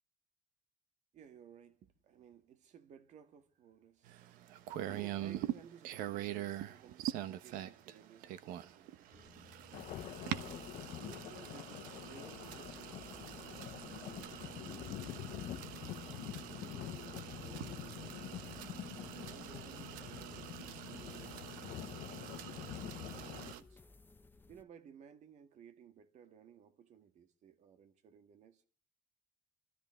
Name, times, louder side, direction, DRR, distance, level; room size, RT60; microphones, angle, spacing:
voice 1, 1.1-9.4 11.0-16.1 16.5-18.6 19.1-22.5 22.8-23.8 24.5-28.7, right 8 dB, 60° right, 1.8 m, -58 dB
sound 1, 4.1-23.6, right 13 dB, 85° right, 1.1 m, -44 dB
sound 2, 9.1-24.6, left 3 dB, 15° left, 0.8 m, -61 dB
sound 3, 9.7-23.5, left 13 dB, 65° left, 1.1 m, -46 dB
28.0 x 13.5 x 3.2 m
cardioid pair, 120°, 14 cm